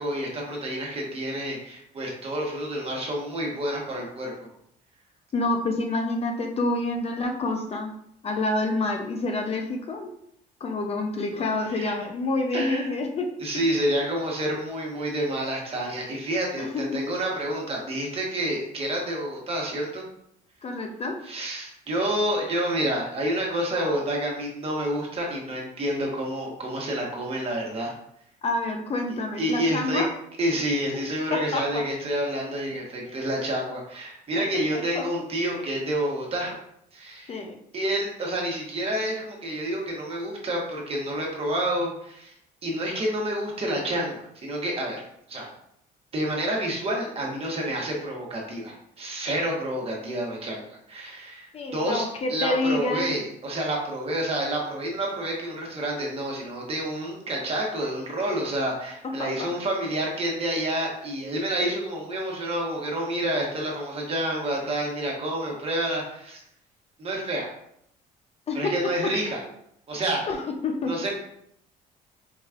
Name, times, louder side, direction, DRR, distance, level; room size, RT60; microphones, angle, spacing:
voice 1, 0.0-4.5 11.7-11.9 12.5-12.9 13.4-20.1 21.2-27.9 29.4-30.0 30.4-36.5 36.9-37.3 37.7-42.3 42.6-45.0 45.3-45.5 46.1-66.4 67.0-67.5 68.5-69.4 69.9-70.2 70.8-71.1, right 1 dB, 35° right, -1 dB, 1.2 m, -29 dB
voice 2, 5.3-7.9 8.2-10.1 10.6-13.3 16.6-16.9 20.6-21.2 28.4-30.1 31.3-31.8 33.0-33.2 34.9-35.1 37.3-37.6 51.5-53.1 59.2-59.5 68.5-69.4 70.3-71.1, left 2 dB, 35° left, 3 dB, 0.5 m, -28 dB
4.7 x 3.0 x 2.4 m, 0.72 s
cardioid pair, 110°, 17 cm